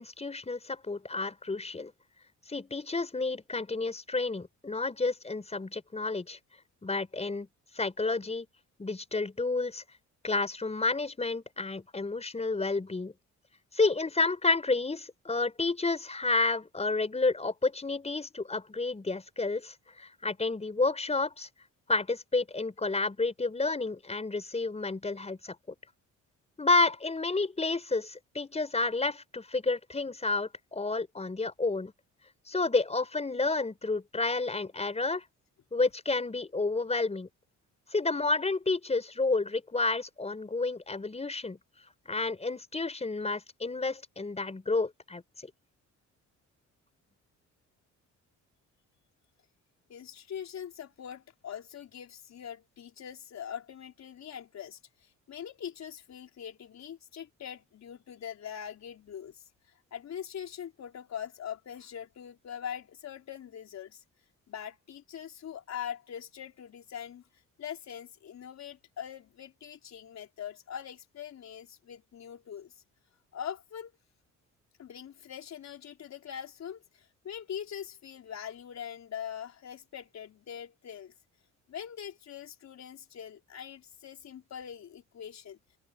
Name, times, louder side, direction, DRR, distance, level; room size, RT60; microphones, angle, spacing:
voice 1, 0.0-1.9 2.5-6.4 6.8-7.5 7.7-8.5 8.8-9.8 10.2-13.1 13.7-21.5 21.9-25.5 26.6-31.9 32.5-35.2 35.7-37.3 37.9-41.6 42.1-45.5, left 3 dB, 20° left, 5.1 m, -30 dB
voice 2, 49.9-64.0 64.5-67.2 67.6-72.7 73.3-73.9 74.8-81.1 81.7-85.6, left 9 dB, 60° left, 4.3 m, -42 dB
cardioid pair, 90°, 30 cm